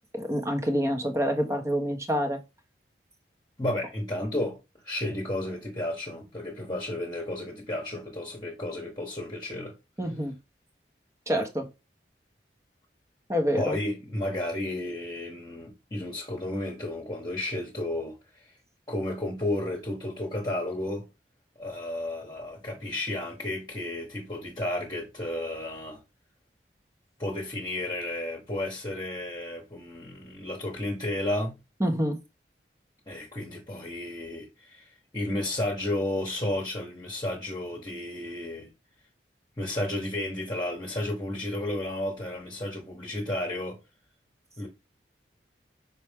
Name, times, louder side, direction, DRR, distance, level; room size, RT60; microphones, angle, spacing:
voice 1, 0.1-2.4 10.0-10.3 11.3-11.7 13.3-13.8 31.8-32.2, equal, 15° right, 1.1 m, -27 dB
voice 2, 3.6-4.6 4.8-9.7 13.6-18.5 18.9-21.1 21.6-26.0 27.2-31.6 33.1-38.7 39.6-43.8 44.6-44.7, left 1 dB, 25° left, 1.3 m, -32 dB
6.1 x 4.4 x 3.5 m
head